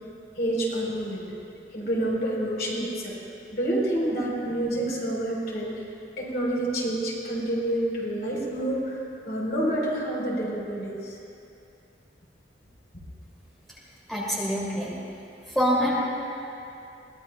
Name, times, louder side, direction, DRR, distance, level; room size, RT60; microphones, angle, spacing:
voice 1, 0.4-1.2 1.7-3.2 3.5-5.7 6.2-11.2, right 1 dB, 60° left, -5 dB, 4.1 m, -28 dB
voice 2, 14.1-15.0 15.5-15.9, equal, ahead, -8 dB, 2.5 m, -25 dB
22.0 x 19.0 x 2.3 m, 2.7 s
head